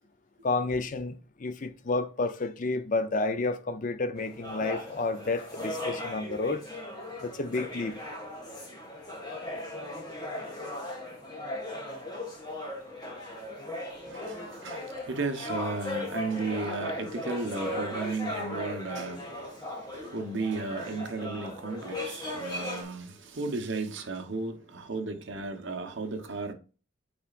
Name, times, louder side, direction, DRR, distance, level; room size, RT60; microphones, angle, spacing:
voice 1, 0.4-6.6 7.2-8.0, left 3 dB, 40° left, 0.5 m, -30 dB
sound 1, 4.1-22.8, left 1 dB, 20° left, 1.7 m, -37 dB
voice 2, 14.1-26.5, right 3 dB, 65° right, 0.9 m, -34 dB
8.4 x 4.9 x 2.4 m
head